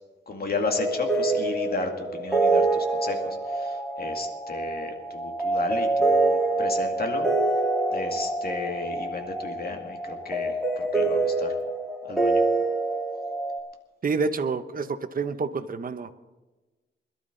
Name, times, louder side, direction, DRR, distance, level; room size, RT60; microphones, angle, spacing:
voice 1, 0.3-3.2 3.5-7.3 7.9-11.5 12.1-12.4, left 3 dB, 50° left, 3 dB, 2.3 m, -33 dB
sound 1, 0.6-13.6, right 2 dB, ahead, 3.6 m, -26 dB
voice 2, 14.0-16.1, right 4 dB, 45° right, 9 dB, 0.9 m, -28 dB
21.5 x 12.0 x 3.9 m, 1.2 s
wide cardioid pair, 110°, 20 cm